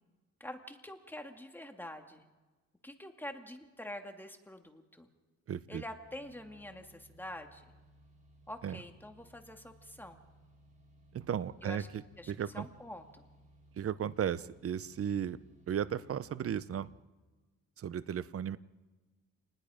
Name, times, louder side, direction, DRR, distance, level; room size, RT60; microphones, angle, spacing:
voice 1, 0.4-2.2 2.8-5.1 5.7-7.6 8.5-10.2 11.6-11.9 12.2-13.3, left 1 dB, 5° left, 4 dB, 2.4 m, -46 dB
voice 2, 5.5-5.8 8.6-8.8 11.1-12.7 13.8-15.4 15.7-16.9 17.8-18.6, right 9 dB, 50° right, 16 dB, 0.9 m, -35 dB
sound 1, 6.0-16.9, right 1 dB, 25° right, 6.9 m, -62 dB
29.0 x 20.0 x 5.1 m, 1.2 s
cardioid pair, 90°, 30 cm